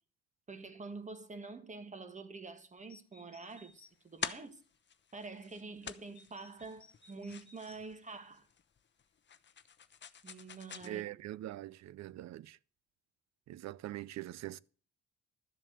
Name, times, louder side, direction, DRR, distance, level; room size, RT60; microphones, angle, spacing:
voice 1, 0.5-4.6 5.1-8.5 10.2-11.3, right 3 dB, 25° right, 1.6 m, -47 dB
sound 1, 2.8-3.9 4.6-4.7 6.1-7.8, left 2 dB, 15° left, 1.9 m, -62 dB
sound 2, 3.5-10.9, left 7 dB, 40° left, 0.8 m, -47 dB
voice 2, 10.8-12.6 13.5-14.6, right 14 dB, 65° right, 0.5 m, -43 dB
12.5 x 7.5 x 6.3 m
cardioid pair, 90°, 30 cm